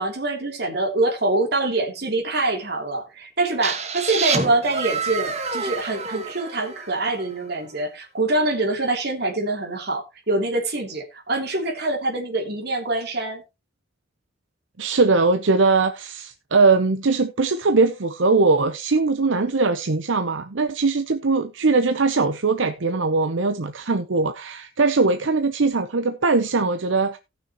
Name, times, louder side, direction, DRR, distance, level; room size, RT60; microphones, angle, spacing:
voice 1, 0.0-13.4, right 2 dB, 55° right, 3.1 m, -25 dB
sound 1, 3.6-7.4, right 4 dB, 35° right, 1.8 m, -28 dB
voice 2, 14.8-27.2, right 3 dB, 80° right, 0.8 m, -20 dB
17.5 x 6.3 x 3.0 m
head